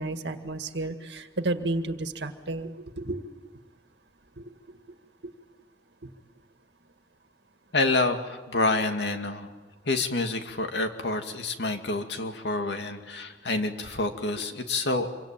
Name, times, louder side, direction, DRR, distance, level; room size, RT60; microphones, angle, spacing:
voice 1, 0.0-3.2 4.4-4.5 5.2-5.3 6.0-6.1, right 2 dB, 80° right, 7 dB, 1.9 m, -32 dB
voice 2, 7.7-9.5 9.9-15.1, left 2 dB, 80° left, 6 dB, 2.4 m, -28 dB
27.0 x 24.5 x 8.9 m, 1.2 s
head